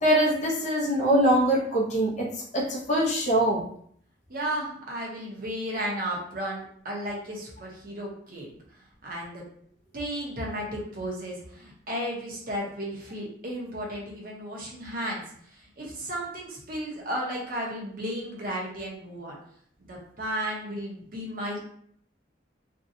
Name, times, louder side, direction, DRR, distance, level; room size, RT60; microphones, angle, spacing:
voice 1, 0.0-2.3 2.5-3.6, right 1 dB, 40° left, -3 dB, 0.6 m, -23 dB
voice 2, 4.3-9.5 9.9-19.4 19.9-21.7, equal, 50° right, -3 dB, 0.8 m, -34 dB
2.7 x 2.2 x 2.6 m, 0.63 s
head